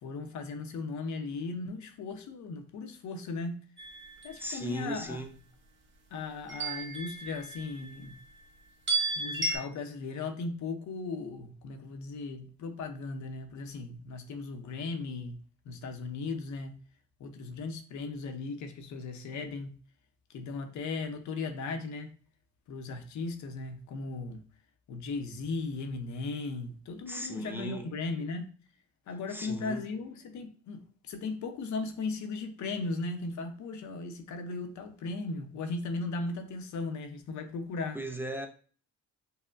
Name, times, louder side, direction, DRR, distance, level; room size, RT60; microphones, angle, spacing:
voice 1, 0.0-3.6 4.2-5.2 6.1-8.1 9.1-15.4 15.7-16.8 17.2-19.7 20.3-22.1 22.7-24.4 24.9-28.5 29.1-30.8 31.1-38.0, left 3 dB, 70° left, 0.7 m, -37 dB
sound 1, 3.8-4.3 6.5-7.9 8.9-9.6, right 3 dB, 40° right, 0.9 m, -33 dB
voice 2, 4.4-5.3 27.1-27.9 29.3-29.8 37.9-38.5, right 1 dB, 5° right, 0.4 m, -37 dB
5.4 x 2.1 x 2.5 m
cardioid pair, 90°, 30 cm